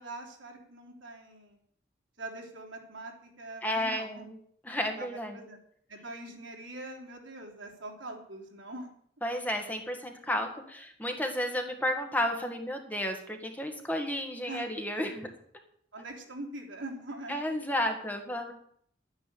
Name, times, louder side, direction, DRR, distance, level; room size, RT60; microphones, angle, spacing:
voice 1, 0.0-1.6 2.2-4.2 4.7-5.6 5.9-8.9 14.5-14.7 15.9-17.4, right 2 dB, 90° right, 0 dB, 3.4 m, -43 dB
voice 2, 3.6-4.4 4.6-5.4 9.2-15.3 17.3-18.5, left 1 dB, 10° left, 3 dB, 1.6 m, -32 dB
12.0 x 9.7 x 6.9 m, 0.65 s
head